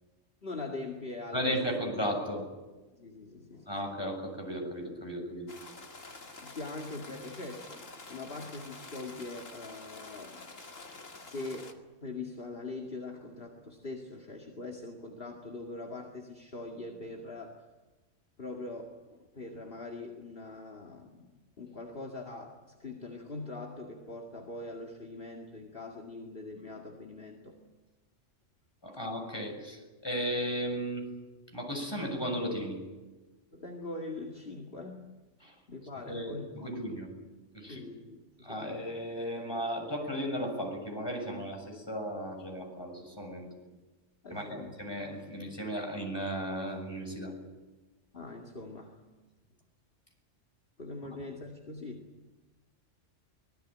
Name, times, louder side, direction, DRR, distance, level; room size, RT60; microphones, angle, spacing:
voice 1, 0.4-1.6 2.9-3.8 6.4-10.4 11.2-11.8 12.0-17.6 18.4-21.3 21.6-27.6 28.9-29.0 33.5-35.1 35.7-37.0 37.7-38.9 44.2-44.7 48.1-49.0 50.8-52.1, left 2 dB, 45° left, 1 dB, 2.4 m, -42 dB
voice 2, 1.3-2.4 3.7-5.5 28.8-31.0 31.5-32.8 35.4-35.5 36.1-37.1 37.5-37.8 38.4-43.5 44.3-47.3, equal, 20° left, 2 dB, 6.9 m, -35 dB
sound 1, 5.5-11.7, left 3 dB, 85° left, 2.6 m, -48 dB
25.0 x 20.5 x 9.1 m, 1.2 s
omnidirectional pair, 1.3 m